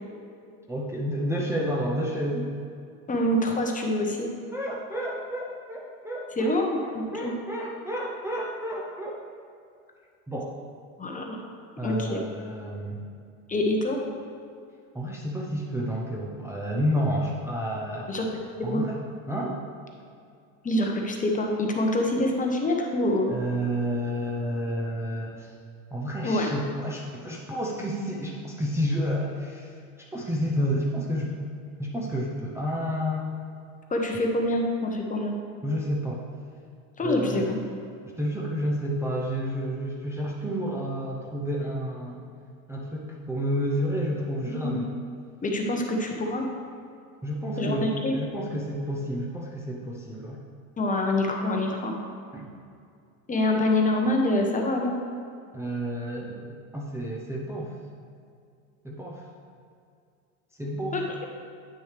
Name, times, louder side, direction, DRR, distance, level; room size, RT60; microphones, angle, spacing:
voice 1, 0.7-2.5 4.5-9.2 10.3-10.5 11.8-13.0 14.9-18.1 18.6-19.6 23.3-25.5 25.9-29.7 30.1-31.3 31.8-33.3 35.6-36.2 37.0-37.5 38.2-42.2 42.7-44.9 47.2-50.4 52.3-52.5 55.5-57.7 58.8-59.2 60.6-61.2, equal, 5° right, -4 dB, 0.7 m, -30 dB
voice 2, 3.1-4.3 6.4-7.3 11.0-11.4 11.8-12.2 13.5-14.0 18.1-18.2 18.6-18.9 20.6-23.3 26.2-26.5 33.9-35.4 37.0-37.6 44.6-44.8 45.4-46.5 47.6-48.1 50.8-52.0 53.3-55.0 60.9-61.0, left 1 dB, 20° left, 1 dB, 1.0 m, -25 dB
9.1 x 6.2 x 3.4 m, 2.3 s
supercardioid pair, 110°, 42 cm